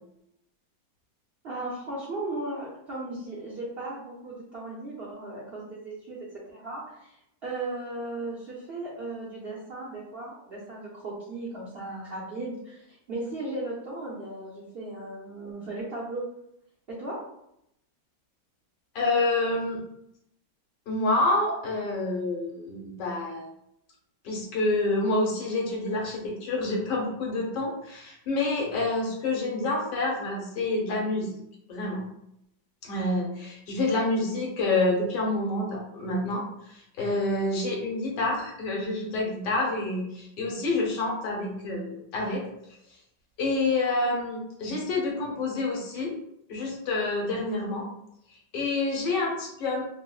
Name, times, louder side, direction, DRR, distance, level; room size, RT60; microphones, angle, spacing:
voice 1, 1.4-16.3 16.9-17.2, right 2 dB, 90° right, -7 dB, 0.5 m, -36 dB
voice 2, 18.9-19.8 20.9-23.5 24.2-31.4 31.7-32.0 32.8-42.4 43.4-46.1 46.5-47.8 48.3-49.8, left 2 dB, 75° left, -1 dB, 1.4 m, -28 dB
3.5 x 2.1 x 2.3 m, 0.77 s
omnidirectional pair, 2.0 m